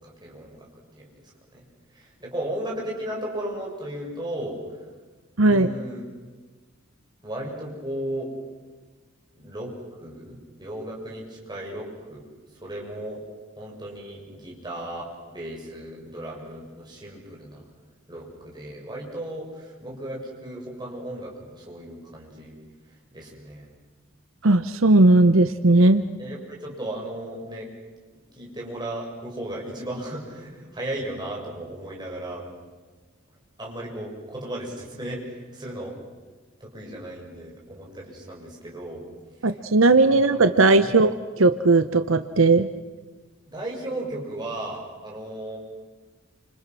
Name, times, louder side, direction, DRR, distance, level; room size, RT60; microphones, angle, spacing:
voice 1, 0.0-0.7 1.0-1.2 1.5-1.6 1.9-4.6 5.5-6.1 7.2-8.3 9.3-9.7 10.0-12.2 12.6-13.2 13.6-17.7 18.1-22.6 23.1-23.7 26.2-27.7 28.1-32.5 33.6-36.0 36.6-39.0 39.4-39.6 40.1-40.4 40.8-40.9 43.5-45.6, right 1 dB, 20° right, -2 dB, 6.9 m, -35 dB
voice 2, 5.4-5.7 24.4-26.1 39.4-42.7, right 2 dB, 80° right, 10 dB, 0.9 m, -17 dB
29.5 x 27.0 x 6.2 m, 1.3 s
head